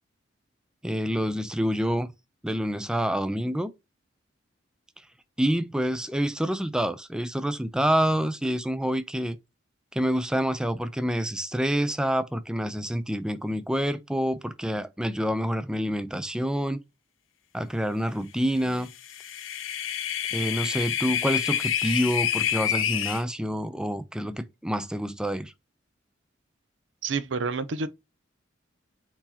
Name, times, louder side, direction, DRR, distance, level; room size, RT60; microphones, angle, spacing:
voice 1, 0.8-2.1 2.4-3.7 5.4-9.4 9.9-16.8 17.5-18.9 20.3-25.5, equal, 5° right, 0.4 m, -27 dB
sound 1, 18.9-23.2, left 10 dB, 85° left, 0.6 m, -28 dB
voice 2, 27.0-27.9, right 4 dB, 70° right, 0.6 m, -28 dB
4.4 x 4.2 x 2.8 m
head